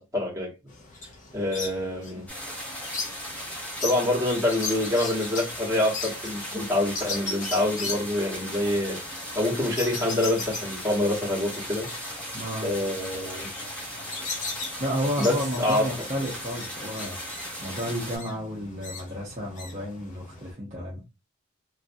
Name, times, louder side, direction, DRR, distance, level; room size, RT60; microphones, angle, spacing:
voice 1, 0.1-0.5 1.3-2.3 3.8-9.0 9.3-11.9 12.6-13.5 15.2-15.9, left 1 dB, 15° right, 1.1 m, -26 dB
sound 1, 0.7-20.5, left 3 dB, 35° left, 0.5 m, -39 dB
sound 2, 2.3-18.2, equal, 5° left, 0.8 m, -37 dB
voice 2, 12.3-12.7 14.8-21.0, equal, 30° right, 0.6 m, -32 dB
3.1 x 2.5 x 2.6 m
head